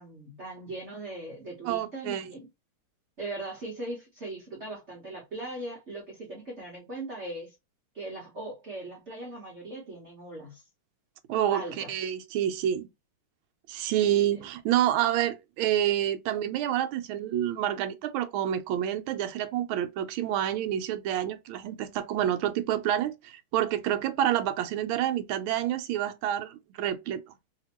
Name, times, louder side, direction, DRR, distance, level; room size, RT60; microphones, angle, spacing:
voice 1, 0.0-2.5 3.2-7.6 7.9-10.6 11.5-11.9, right 2 dB, 45° right, 1.0 m, -39 dB
voice 2, 1.7-2.3 11.3-12.9 13.7-27.2, right 11 dB, 80° right, 1.4 m, -28 dB
3.3 x 2.8 x 2.8 m
omnidirectional pair, 2.3 m